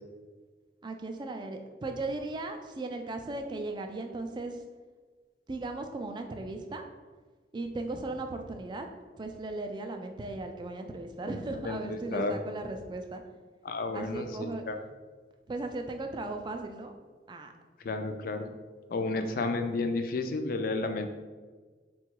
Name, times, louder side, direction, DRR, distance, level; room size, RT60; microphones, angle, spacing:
voice 1, 0.8-4.6 5.5-6.8 7.5-8.9 9.2-13.2 13.9-14.6 15.5-16.9 17.3-17.5, right 2 dB, 25° right, 5 dB, 0.3 m, -37 dB
voice 2, 11.6-12.3 13.6-14.8 17.8-18.5 18.9-21.1, left 3 dB, 50° left, 6 dB, 0.3 m, -32 dB
3.7 x 2.3 x 4.5 m, 1.4 s
head